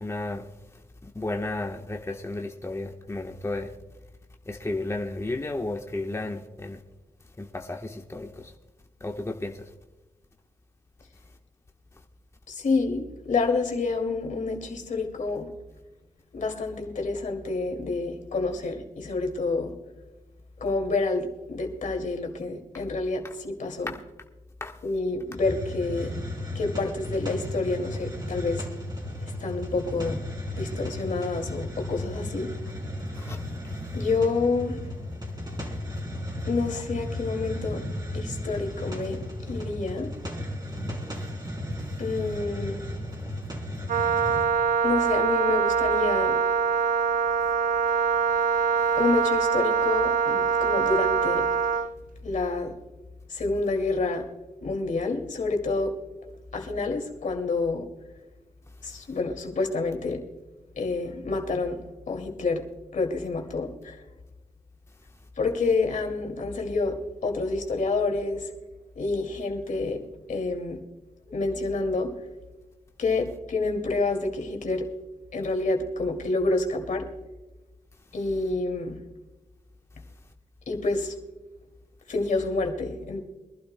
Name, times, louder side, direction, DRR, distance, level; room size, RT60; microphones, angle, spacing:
voice 1, 0.0-0.5 1.0-3.7 4.5-6.8 7.4-8.5 9.0-9.7 22.7-22.8 23.9-24.0 24.6-24.7 33.1-33.4, left 2 dB, 20° left, 2 dB, 1.1 m, -33 dB
voice 2, 12.5-15.5 16.3-19.7 20.6-24.0 24.8-26.1 26.5-28.7 29.2-30.2 30.6-32.5 33.9-34.8 36.4-37.8 38.1-40.1 42.0-42.8 44.8-46.4 49.0-51.5 52.2-52.7 53.3-54.2 54.6-55.9 56.5-57.9 58.8-60.2 60.8-61.8 62.1-62.6 62.9-64.0 65.4-67.0 67.2-68.5 69.0-70.0 70.3-70.8 71.3-72.1 73.0-74.9 75.3-77.1 78.1-79.0 80.7-81.1 82.1-83.2, left 3 dB, 65° left, 3 dB, 2.3 m, -28 dB
Hiss, 25.3-44.6, left 1 dB, 30° right, 4.1 m, -34 dB
Wind instrument woodwind instrument, 43.9-51.9, right 6 dB, 70° right, 0.7 m, -24 dB
24.5 x 12.0 x 2.2 m, 1.1 s
cardioid pair, 55°, 14 cm